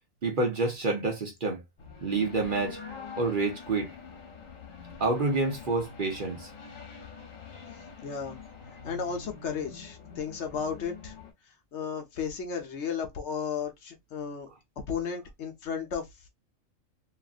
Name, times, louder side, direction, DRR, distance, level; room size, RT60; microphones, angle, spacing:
voice 1, 0.2-1.6 2.0-2.8 3.2-3.9 5.0-6.5, right 3 dB, 45° right, 0.9 m, -28 dB
sound 1, 1.8-11.3, left 5 dB, 80° left, 1.3 m, -45 dB
voice 2, 8.0-8.4 8.8-11.1 11.7-14.5 14.9-16.1, left 6 dB, 65° left, 0.9 m, -34 dB
2.9 x 2.5 x 2.4 m
omnidirectional pair, 1.4 m